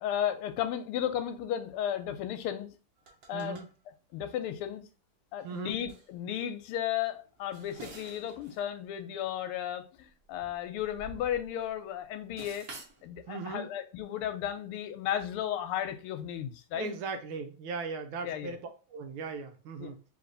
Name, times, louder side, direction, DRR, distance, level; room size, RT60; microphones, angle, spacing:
voice 1, 0.0-2.7 3.3-3.6 4.1-4.9 5.3-12.7 13.0-16.9 18.2-18.5 19.8-19.9, left 10 dB, 90° left, 9 dB, 1.5 m, -34 dB
sound 1, 3.0-3.7 4.4-4.5 5.4-5.6 5.9-6.1 7.3-8.7 8.9-9.0 10.1-11.7 12.0-13.0, right 3 dB, 55° right, 1.2 m, -49 dB
voice 2, 3.3-3.7 5.4-5.8 13.3-13.7 16.7-18.6 18.9-20.0, right 4 dB, 75° right, 7 dB, 1.5 m, -38 dB
3.4 x 3.3 x 3.9 m, 0.35 s
omnidirectional pair, 2.4 m